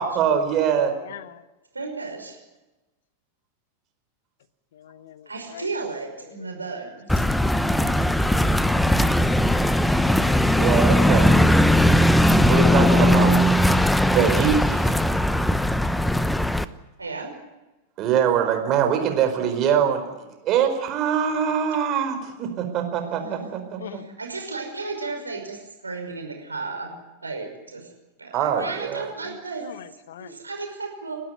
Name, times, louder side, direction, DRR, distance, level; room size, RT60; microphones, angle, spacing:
voice 1, 0.0-0.9 10.5-11.3 12.5-13.3 13.7-13.8 14.1-14.9 18.0-20.0 20.4-24.0 28.3-29.1, right 8 dB, 35° right, 6 dB, 4.8 m, -23 dB
voice 2, 0.7-1.4 4.7-5.7 23.8-24.1 29.2-30.4, left 10 dB, 60° left, 14 dB, 1.3 m, -42 dB
voice 3, 1.7-2.4 5.3-7.2 17.0-17.3 23.2-23.5 23.8-26.9 27.2-27.9 28.2-29.7 30.2-31.2, right 3 dB, 80° right, 3 dB, 5.6 m, -34 dB
sound 1, 7.1-16.7, left 1 dB, 5° left, 0.9 m, -19 dB
29.5 x 12.5 x 9.6 m, 1.1 s
figure-of-eight pair, 90°, 0 cm